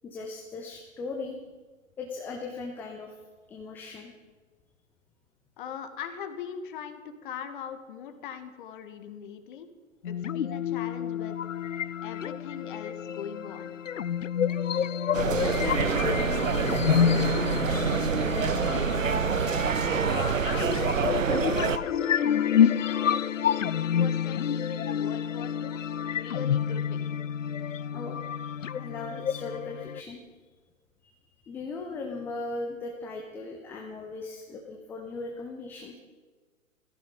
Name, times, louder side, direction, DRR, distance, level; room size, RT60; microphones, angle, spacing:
voice 1, 0.0-1.4 2.0-3.1 3.5-4.1 15.3-18.9 23.9-24.0 27.9-28.2 28.7-30.2 31.0-31.1 31.4-36.0, left 3 dB, 5° left, 1 dB, 0.5 m, -38 dB
voice 2, 5.6-9.7 10.0-11.4 12.0-13.7 20.1-23.3 23.8-27.2, left 7 dB, 40° left, 8 dB, 1.7 m, -41 dB
sound 1, 10.0-30.0, left 8 dB, 70° left, 0.6 m, -29 dB
sound 2, 15.1-21.8, right 6 dB, 70° right, 1.0 m, -27 dB
15.5 x 14.5 x 5.3 m, 1.5 s
figure-of-eight pair, 120°, 40 cm